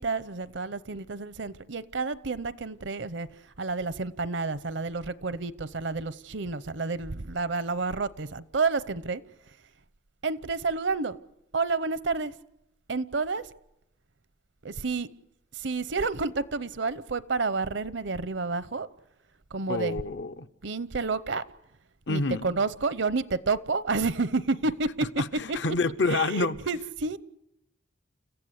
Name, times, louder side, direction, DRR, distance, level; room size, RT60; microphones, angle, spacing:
voice 1, 0.0-3.3 3.6-9.2 10.2-11.2 11.5-12.3 12.9-13.5 14.6-15.1 15.5-18.9 19.5-20.0 20.6-21.4 22.1-25.1 25.5-25.6 26.1-27.2, right 4 dB, 70° right, 0.8 m, -30 dB
voice 2, 19.7-20.5 22.1-22.5 25.2-26.6, left 3 dB, 65° left, 0.8 m, -28 dB
30.0 x 15.0 x 8.1 m
head